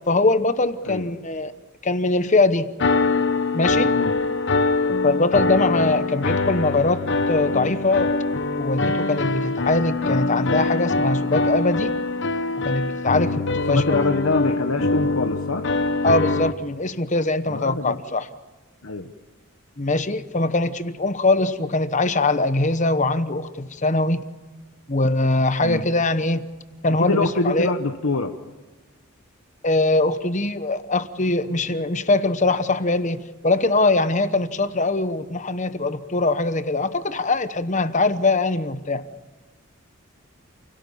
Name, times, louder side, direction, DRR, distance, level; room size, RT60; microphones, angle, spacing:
voice 1, 0.1-1.5 1.8-2.7 3.5-3.9 5.0-8.1 8.6-11.9 12.6-14.0 16.0-18.3 19.8-24.2 24.9-26.5 26.8-27.7 29.6-39.1, left 2 dB, 35° left, 12 dB, 1.0 m, -22 dB
sound 1, 2.8-16.5, left 3 dB, 55° left, 1.2 m, -23 dB
voice 2, 13.7-15.7 17.5-18.0 18.8-19.1 25.6-25.8 27.0-28.3, left 3 dB, 75° left, 5 dB, 1.2 m, -25 dB
28.5 x 17.0 x 7.1 m, 1.3 s
head